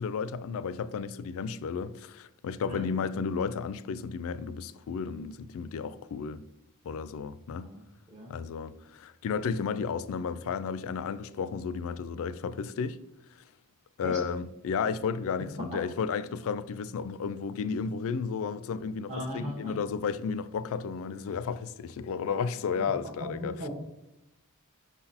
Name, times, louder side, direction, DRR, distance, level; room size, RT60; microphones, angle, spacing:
voice 1, 0.0-6.4 6.8-7.7 8.3-13.0 14.0-23.5, left 6 dB, 65° left, 0.3 m, -33 dB
voice 2, 7.6-8.4 14.0-14.2 15.7-15.8 19.1-19.7 23.2-23.7, equal, 35° right, 1.2 m, -38 dB
5.9 x 3.9 x 4.2 m
head